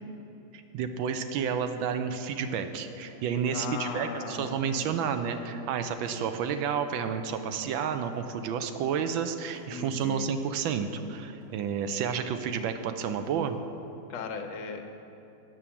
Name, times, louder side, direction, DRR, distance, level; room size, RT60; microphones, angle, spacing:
voice 1, 0.5-13.6, right 7 dB, 80° right, 8 dB, 1.4 m, -30 dB
sound 1, 2.4-13.5, equal, 40° right, 2.9 m, -57 dB
voice 2, 3.5-5.0 9.7-10.3 14.1-14.9, left 4 dB, 70° left, 3 dB, 1.4 m, -38 dB
8.9 x 6.2 x 7.1 m, 2.9 s
omnidirectional pair, 2.1 m